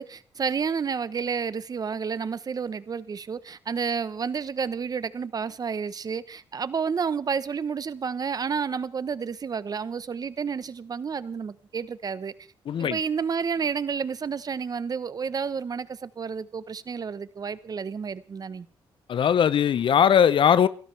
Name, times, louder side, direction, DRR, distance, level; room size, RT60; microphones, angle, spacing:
voice 1, 0.0-12.3 12.8-18.7, right 6 dB, 40° right, 0.9 m, -30 dB
voice 2, 12.7-13.0 19.1-20.7, left 8 dB, 60° left, 0.7 m, -20 dB
28.0 x 13.0 x 3.3 m
cardioid pair, 80°, 10 cm